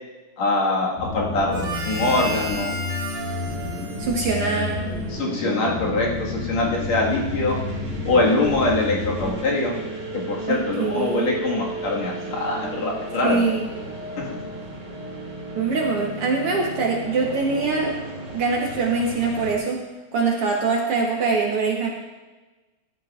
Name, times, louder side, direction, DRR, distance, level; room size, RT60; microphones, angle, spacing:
voice 1, 0.4-2.8 5.1-7.6 8.1-9.7 10.1-13.4 14.2-14.4, left 2 dB, 55° left, -3 dB, 2.8 m, -23 dB
sound 1, 1.0-9.3, left 3 dB, 85° left, 3.7 m, -31 dB
Harmonica, 1.5-5.3, right 2 dB, 50° right, 1.6 m, -33 dB
sound 2, 3.2-19.6, right 1 dB, 30° right, 2.2 m, -35 dB
voice 2, 4.0-4.8 10.5-11.3 13.2-13.7 15.5-18.0 18.3-19.8 20.1-21.9, right 4 dB, 75° right, -1 dB, 1.3 m, -23 dB
14.0 x 12.0 x 2.4 m, 1.2 s
omnidirectional pair, 3.9 m